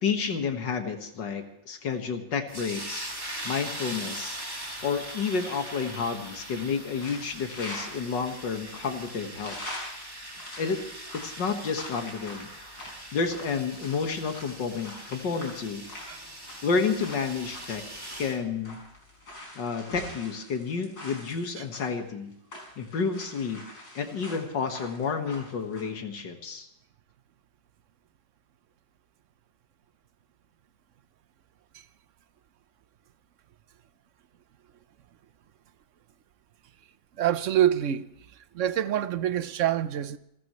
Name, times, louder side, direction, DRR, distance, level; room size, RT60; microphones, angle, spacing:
voice 1, 0.0-3.1 3.4-4.4 4.8-9.6 10.6-10.8 11.2-12.5 13.1-15.8 16.6-18.8 19.6-22.3 22.8-23.6 23.9-26.7, left 5 dB, 90° left, 2.3 m, -30 dB
sound 1, 2.5-18.4, right 1 dB, 10° right, 2.5 m, -41 dB
sound 2, 6.8-8.0 8.5-8.6 9.1-21.9 22.3-25.8, left 1 dB, 65° left, 6.7 m, -43 dB
voice 2, 37.2-38.1 38.5-40.2, right 11 dB, 55° right, 0.9 m, -26 dB
29.0 x 13.5 x 3.1 m
omnidirectional pair, 1.9 m